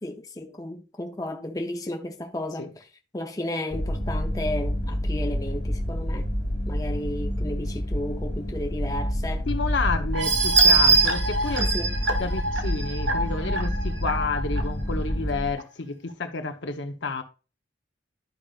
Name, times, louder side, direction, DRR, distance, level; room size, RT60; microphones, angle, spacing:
voice 1, 0.0-2.8 3.1-6.2 6.7-9.5 11.6-11.9, left 1 dB, 20° left, 0.6 m, -33 dB
sound 1, 3.7-15.5, equal, 55° left, 1.8 m, -28 dB
voice 2, 9.5-11.7 12.2-17.2, left 4 dB, 75° left, 0.9 m, -30 dB
sound 2, 10.1-14.6 15.1-15.2 15.6-15.7, right 3 dB, 75° right, 1.0 m, -23 dB
11.5 x 5.1 x 2.4 m
head